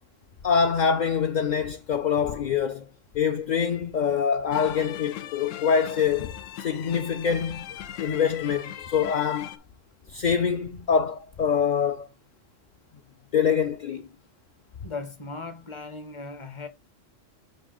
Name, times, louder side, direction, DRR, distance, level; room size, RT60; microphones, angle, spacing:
voice 1, 0.4-2.9 3.1-7.7 8.0-9.6 10.1-12.1 13.3-14.1, left 7 dB, 50° left, 0.6 m, -25 dB
sound 1, 4.5-9.6, left 11 dB, 85° left, 0.9 m, -40 dB
voice 2, 14.8-16.7, left 3 dB, 25° left, 0.9 m, -37 dB
5.4 x 5.3 x 3.7 m
omnidirectional pair, 1.2 m